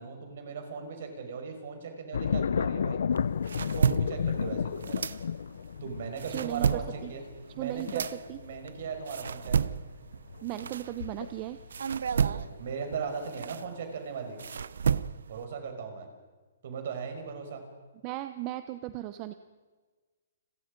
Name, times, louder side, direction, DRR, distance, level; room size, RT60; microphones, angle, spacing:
voice 1, 0.0-3.0 3.7-5.1 5.8-7.2 7.5-8.1 8.4-9.6 12.0-14.4 15.3-16.1 16.6-17.7, right 5 dB, 55° right, 5 dB, 5.6 m, -38 dB
sound 1, 2.1-11.8 12.2-12.7, left 7 dB, 75° left, 0.7 m, -32 dB
sound 2, 3.1-5.7 6.0-11.3 11.7-15.4, right 7 dB, 75° right, 0.7 m, -32 dB
voice 2, 6.3-7.1 7.6-8.4 10.4-11.6 18.0-19.3, right 15 dB, 25° right, 10 dB, 0.8 m, -36 dB
30.0 x 22.5 x 5.4 m, 1.4 s
hypercardioid pair, 160°, 0 cm